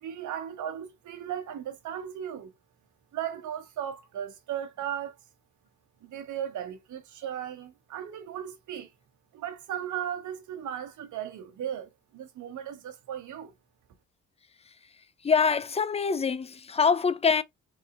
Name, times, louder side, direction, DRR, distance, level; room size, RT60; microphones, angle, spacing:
voice 1, 0.0-2.5 3.1-5.1 6.0-8.9 9.3-13.5, right 10 dB, 75° right, 1.2 m, -36 dB
voice 2, 15.2-17.4, left 5 dB, 20° left, 0.5 m, -24 dB
4.0 x 3.6 x 2.4 m
cardioid pair, 90°, 30 cm